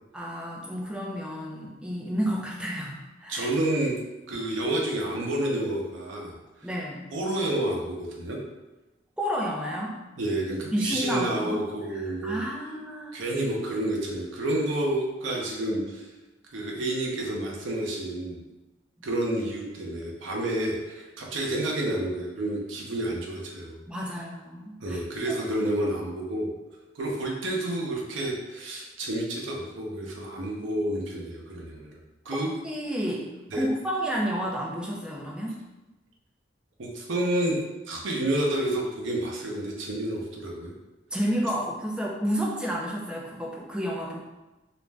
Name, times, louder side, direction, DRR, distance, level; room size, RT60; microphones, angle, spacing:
voice 1, 0.1-3.5 6.6-7.0 9.2-10.0 10.7-11.6 11.9-13.2 23.9-25.0 25.3-25.4 32.3-33.3 33.5-35.6 41.1-44.2, equal, 5° right, -2 dB, 0.4 m, -31 dB
voice 2, 3.3-3.9 4.3-6.4 7.1-8.4 10.2-12.5 13.1-16.1 16.5-18.4 19.0-23.8 24.8-26.5 26.9-32.0 32.3-32.5 33.5-33.6 36.8-37.6 37.9-40.7, right 1 dB, 80° right, -1 dB, 0.6 m, -29 dB
2.4 x 2.1 x 3.3 m, 1.1 s
head